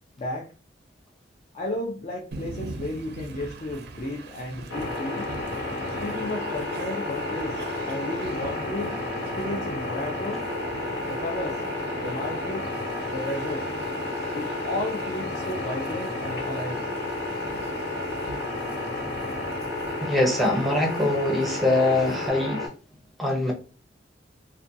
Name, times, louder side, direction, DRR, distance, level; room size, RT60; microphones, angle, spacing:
voice 1, 0.2-0.5 1.5-5.3 6.0-10.4 11.1-11.6 12.0-12.7 13.1-13.7 14.3-16.9, left 1 dB, 40° left, 0.5 m, -33 dB
Train, 2.3-22.3, right 3 dB, 60° right, 0.4 m, -42 dB
sound 1, 4.7-22.7, left 2 dB, 85° left, 0.8 m, -31 dB
voice 2, 20.0-22.7 23.2-23.5, left 2 dB, ahead, 0.6 m, -23 dB
2.4 x 2.2 x 2.6 m
head